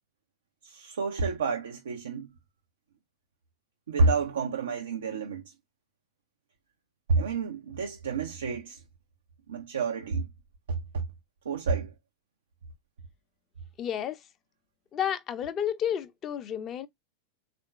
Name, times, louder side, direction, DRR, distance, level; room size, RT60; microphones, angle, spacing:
voice 1, 0.6-2.3 3.9-5.4 7.1-8.8 9.5-10.3 10.7-11.0 11.4-11.9, right 4 dB, 65° right, 0.6 m, -29 dB
voice 2, 13.8-14.2 14.9-16.9, left 9 dB, 30° left, 0.6 m, -31 dB
3.6 x 2.5 x 4.5 m
figure-of-eight pair, 90°, 0 cm